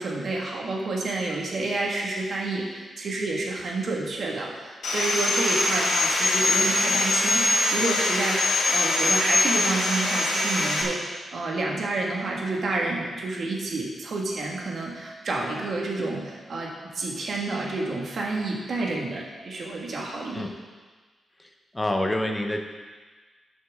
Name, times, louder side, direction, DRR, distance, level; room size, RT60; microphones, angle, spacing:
voice 1, 0.0-20.4, right 2 dB, 45° right, -2 dB, 1.7 m, -29 dB
Sawing, 4.8-10.8, left 2 dB, 70° left, 2.0 m, -23 dB
voice 2, 21.7-22.6, left 1 dB, 10° left, 3 dB, 0.9 m, -26 dB
12.5 x 7.3 x 3.7 m, 1.4 s
wide cardioid pair, 175°, 0 cm